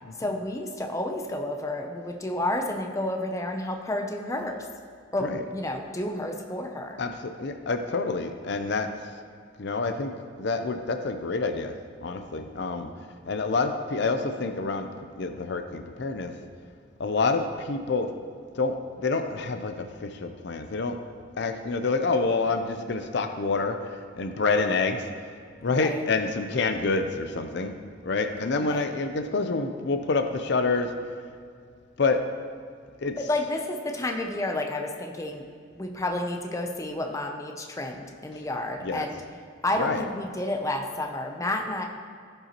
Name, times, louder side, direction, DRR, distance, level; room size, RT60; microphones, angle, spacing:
voice 1, 0.2-4.7 5.1-7.0 25.8-26.0 28.6-28.8 33.2-35.4 35.8-39.2 39.6-41.8, left 1 dB, 15° left, 3 dB, 0.6 m, -30 dB
voice 2, 7.0-8.9 9.6-10.1 10.4-11.7 12.0-12.9 13.3-14.9 15.2-16.3 17.0-18.1 18.6-18.7 19.0-21.0 21.4-25.1 25.6-27.7 28.0-30.9 32.0-32.2 33.0-33.2 38.3-38.4 38.8-39.1 39.8-40.0, left 3 dB, 60° left, 6 dB, 0.5 m, -27 dB
16.0 x 5.5 x 2.9 m, 2.1 s
head